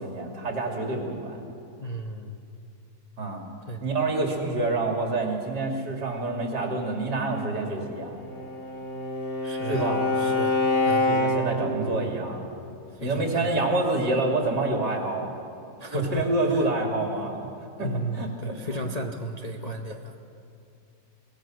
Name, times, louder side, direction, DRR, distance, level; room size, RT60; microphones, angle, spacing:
voice 1, 0.0-1.4 3.2-3.5 3.8-8.2 9.7-10.1 11.1-12.4 13.0-15.4 15.9-17.5 17.8-18.8, right 2 dB, 70° right, 1 dB, 3.2 m, -27 dB
voice 2, 1.8-2.4 3.7-3.8 9.4-9.9 10.2-11.1 12.9-13.7 15.8-16.7 17.8-20.2, right 1 dB, 30° left, 2 dB, 0.7 m, -34 dB
Bowed string instrument, 8.1-11.7, left 2 dB, 65° left, 4.6 m, -26 dB
23.0 x 19.0 x 6.3 m, 2.6 s
omnidirectional pair, 1.9 m